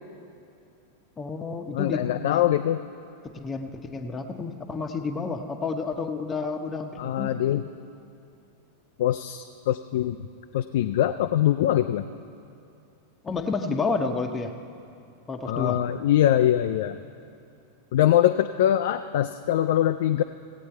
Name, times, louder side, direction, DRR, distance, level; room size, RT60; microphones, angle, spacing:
voice 1, 1.2-2.4 3.2-7.3 13.2-14.5 15.3-15.8, left 4 dB, 15° left, 4 dB, 0.8 m, -30 dB
voice 2, 1.7-2.8 7.0-7.6 9.0-10.3 10.5-12.0 15.5-17.0 17.9-20.2, left 12 dB, 55° left, 8 dB, 0.3 m, -23 dB
17.5 x 8.4 x 4.5 m, 2.6 s
figure-of-eight pair, 90°, 0 cm